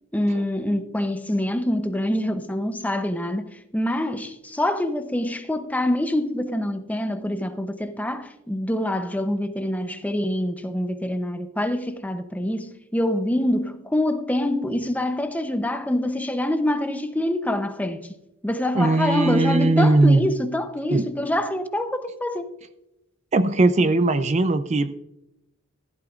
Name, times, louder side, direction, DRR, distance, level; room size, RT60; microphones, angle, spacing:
voice 1, 0.1-18.2 18.4-22.6, left 1 dB, 10° left, 0.7 m, -25 dB
voice 2, 18.7-20.3 20.9-21.1 23.3-24.9, right 2 dB, 35° right, 0.5 m, -19 dB
15.0 x 12.0 x 2.4 m
head